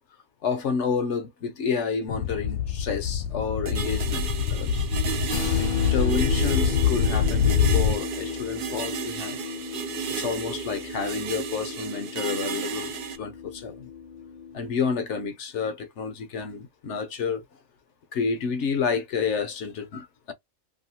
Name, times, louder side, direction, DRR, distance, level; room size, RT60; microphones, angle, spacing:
voice 1, 0.4-4.9 5.6-9.4 10.1-13.9 14.5-17.4 18.1-20.3, left 5 dB, 65° left, 0.8 m, -30 dB
sound 1, 2.1-8.0, left 7 dB, 85° left, 1.0 m, -25 dB
sound 2, 3.7-13.2, right 8 dB, 65° right, 0.5 m, -34 dB
sound 3, 5.3-14.9, left 7 dB, 40° left, 0.5 m, -35 dB
2.7 x 2.4 x 2.8 m
omnidirectional pair, 1.5 m